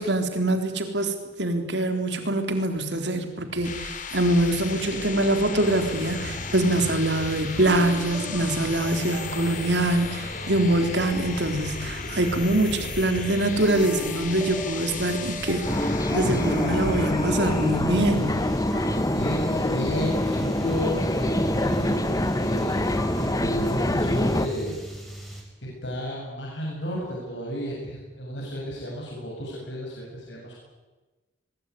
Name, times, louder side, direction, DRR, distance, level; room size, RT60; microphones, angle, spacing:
voice 1, 0.0-18.4, right 1 dB, 70° right, 6 dB, 3.8 m, -24 dB
sound 1, 3.4-17.9, left 4 dB, 45° left, 3.0 m, -36 dB
sound 2, 5.6-25.4, equal, ahead, 6.5 m, -39 dB
sound 3, 15.6-24.5, left 1 dB, 20° left, 1.4 m, -25 dB
voice 2, 19.1-22.1 22.4-24.8 25.6-30.5, equal, 80° left, -3 dB, 7.9 m, -33 dB
22.5 x 21.5 x 9.9 m, 1.2 s
head